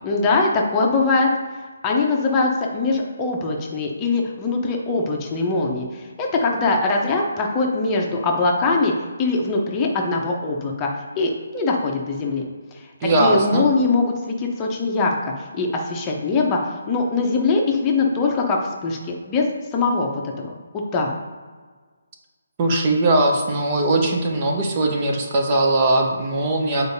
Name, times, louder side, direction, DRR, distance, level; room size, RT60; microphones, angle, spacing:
voice 1, 0.0-1.3 1.8-8.9 9.2-10.9 11.2-12.4 12.7-12.9 13.2-19.5 19.7-20.1 20.4-21.1, left 3 dB, 20° left, 0 dB, 0.8 m, -22 dB
voice 2, 13.0-13.7 22.6-26.9, right 2 dB, 30° right, 1 dB, 0.8 m, -20 dB
8.0 x 4.4 x 2.7 m, 1.5 s
figure-of-eight pair, 145°, 0 cm